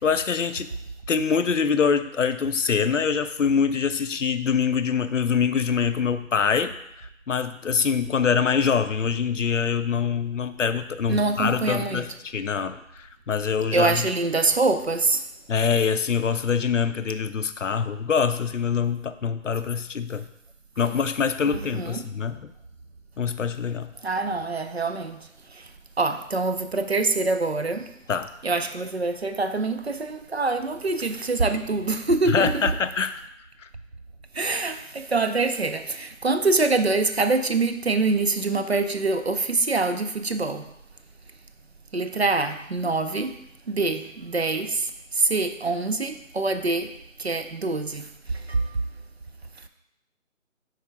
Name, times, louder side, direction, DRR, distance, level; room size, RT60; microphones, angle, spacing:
voice 1, 0.0-0.7 1.1-6.7 7.3-14.1 15.5-20.3 20.8-22.5 23.2-23.9 28.1-28.3 32.3-33.2 33.6-33.7, left 6 dB, 65° left, 11 dB, 0.5 m, -24 dB
voice 2, 11.1-12.1 13.7-15.2 21.5-22.1 24.0-25.6 26.0-27.9 28.4-32.7 34.3-40.6 41.9-43.3 43.7-46.9 47.2-48.7, right 3 dB, 50° right, 8 dB, 0.5 m, -25 dB
4.9 x 4.6 x 4.5 m, 0.81 s
figure-of-eight pair, 165°, 41 cm